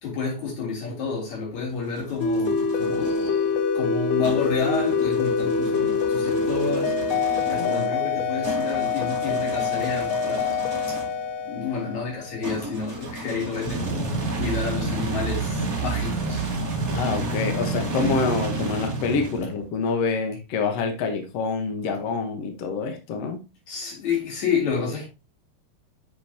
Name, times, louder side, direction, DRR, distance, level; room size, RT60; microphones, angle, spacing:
voice 1, 0.0-10.7 11.4-16.4 22.8-22.9 23.7-25.1, left 5 dB, 50° left, 4.3 m, -30 dB
sound 1, 1.5-3.3 4.2-11.2 12.4-19.7, right 3 dB, 70° right, 0.8 m, -31 dB
sound 2, 2.2-12.5, left 5 dB, 90° left, 2.8 m, -25 dB
voice 2, 7.6-7.9 16.9-23.5, left 4 dB, 70° left, 1.5 m, -26 dB
9.6 x 6.5 x 2.8 m
omnidirectional pair, 4.5 m